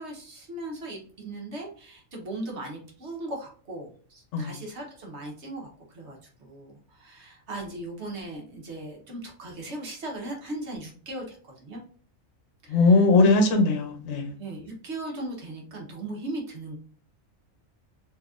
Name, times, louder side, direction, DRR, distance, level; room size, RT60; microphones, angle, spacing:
voice 1, 0.0-11.8 12.6-13.3 14.4-16.8, right 2 dB, 55° right, 1.1 m, -38 dB
voice 2, 12.7-14.3, left 3 dB, 65° left, 0.9 m, -20 dB
3.9 x 2.8 x 2.4 m
omnidirectional pair, 1.4 m